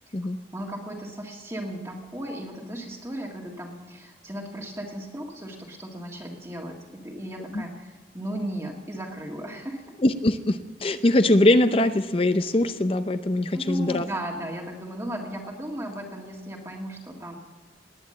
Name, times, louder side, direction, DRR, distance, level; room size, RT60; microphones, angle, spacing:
voice 1, 0.5-9.9 13.5-17.4, right 1 dB, 15° right, -1 dB, 1.7 m, -36 dB
voice 2, 10.0-14.1, left 1 dB, 30° left, 10 dB, 0.6 m, -22 dB
19.5 x 9.4 x 7.5 m, 1.4 s
head